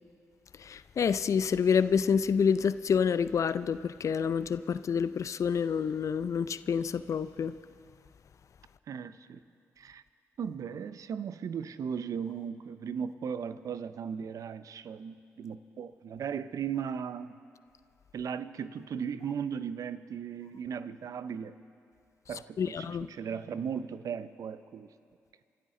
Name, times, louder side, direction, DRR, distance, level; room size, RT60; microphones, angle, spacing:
voice 1, 0.6-7.6 22.6-23.1, left 6 dB, 55° left, 0.5 m, -28 dB
voice 2, 8.9-9.4 9.8-10.0 10.4-17.4 18.1-21.6 22.3-24.9, right 7 dB, 65° right, 0.6 m, -37 dB
27.5 x 12.5 x 3.8 m
supercardioid pair, 45°, 6 cm